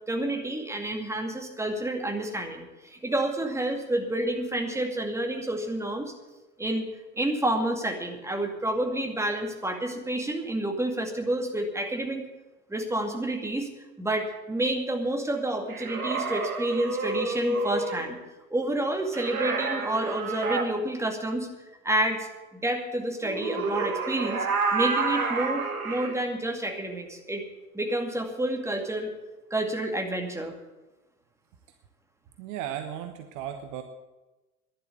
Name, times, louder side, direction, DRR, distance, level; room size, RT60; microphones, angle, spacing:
voice 1, 0.1-6.1 6.6-6.9 7.2-12.2 12.7-13.7 14.0-18.2 18.5-24.5 24.7-27.4 27.7-29.1 29.5-30.5, right 1 dB, 5° right, 2 dB, 2.3 m, -29 dB
sound 1, 15.7-18.1 19.1-20.7 23.2-26.2, right 3 dB, 75° right, 1.6 m, -29 dB
voice 2, 32.4-33.8, right 10 dB, 45° right, 7 dB, 1.1 m, -35 dB
11.5 x 11.0 x 8.4 m, 1.1 s
figure-of-eight pair, 75°, 44 cm